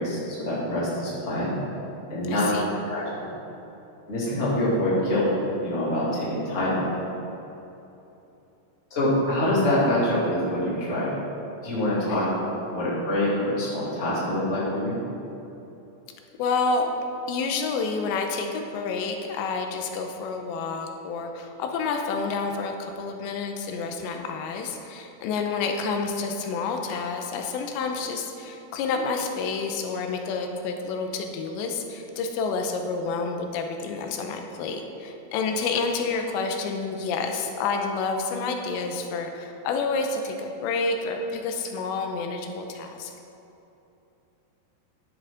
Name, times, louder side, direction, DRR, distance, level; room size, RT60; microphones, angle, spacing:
voice 1, 0.0-1.5 2.1-2.5 2.9-3.3 4.1-5.3 5.6-6.9 8.9-11.2 11.6-15.0, left 1 dB, 20° left, -8 dB, 2.2 m, -25 dB
voice 2, 2.3-2.7 12.1-12.4 16.4-16.9 17.3-43.1, left 4 dB, 90° left, 4 dB, 2.9 m, -29 dB
11.0 x 10.0 x 3.8 m, 2.9 s
omnidirectional pair, 5.1 m